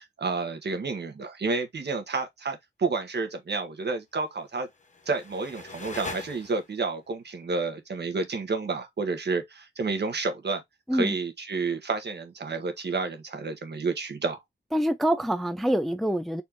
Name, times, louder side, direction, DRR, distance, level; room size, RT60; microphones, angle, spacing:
voice 1, 0.0-4.7 5.0-10.6 10.9-14.4, right 4 dB, 60° right, 1.4 m, -30 dB
sound 1, 4.6-6.9, left 3 dB, 35° left, 0.9 m, -41 dB
voice 2, 14.7-16.4, right 1 dB, ahead, 0.4 m, -25 dB
4.3 x 2.9 x 3.7 m
wide cardioid pair, 135°, 20 cm